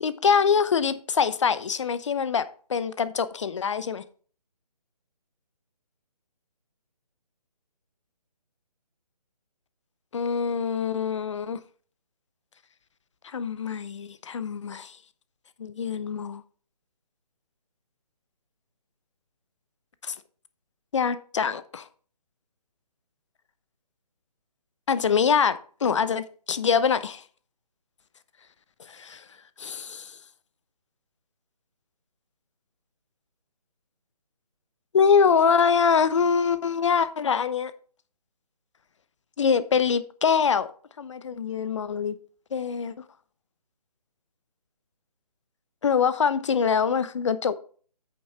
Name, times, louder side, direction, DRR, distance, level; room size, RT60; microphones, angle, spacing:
voice 1, 0.0-2.4 2.7-4.0 10.1-11.6 13.2-15.0 15.6-16.4 20.0-20.1 20.9-21.9 24.9-27.2 28.9-29.2 29.6-30.2 34.9-37.7 39.4-40.7 41.0-42.2 42.5-42.9 45.8-47.5, left 6 dB, 45° left, 0.9 m, -24 dB
8.5 x 6.7 x 4.4 m
figure-of-eight pair, 155°, 21 cm